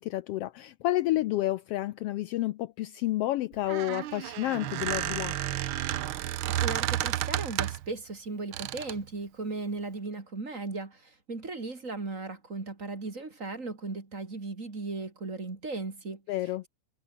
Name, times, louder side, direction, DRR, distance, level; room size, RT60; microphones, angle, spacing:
voice 1, 0.0-5.3 16.3-16.6, left 15 dB, 90° left, 1.3 m, -30 dB
Squeak, 3.5-7.9 8.5-9.0, right 13 dB, 85° right, 1.1 m, -31 dB
voice 2, 6.5-16.2, right 3 dB, 25° right, 2.8 m, -37 dB
omnidirectional pair, 3.4 m